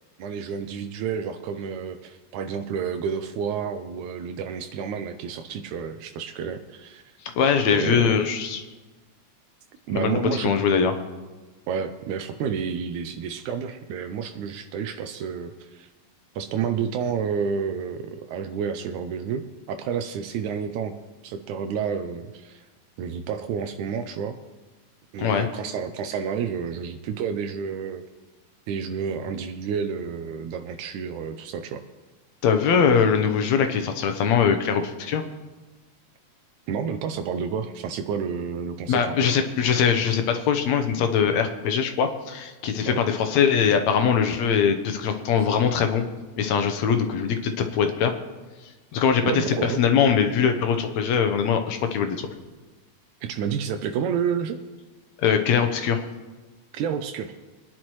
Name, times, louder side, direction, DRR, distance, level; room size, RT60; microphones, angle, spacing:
voice 1, 0.2-7.0 7.7-8.2 9.9-10.5 11.7-15.9 16.4-21.0 21.2-22.6 23.0-24.4 25.1-28.0 28.7-31.8 36.7-39.0 42.8-43.0 49.2-49.8 53.2-54.6 56.7-57.3, right 7 dB, 80° right, 7 dB, 2.0 m, -30 dB
voice 2, 7.4-8.6 10.0-10.9 25.2-25.5 32.4-35.2 38.9-46.0 46.4-48.1 48.9-52.3 55.2-56.0, left 7 dB, 70° left, 7 dB, 2.0 m, -22 dB
22.5 x 10.5 x 3.1 m, 1.2 s
omnidirectional pair, 3.5 m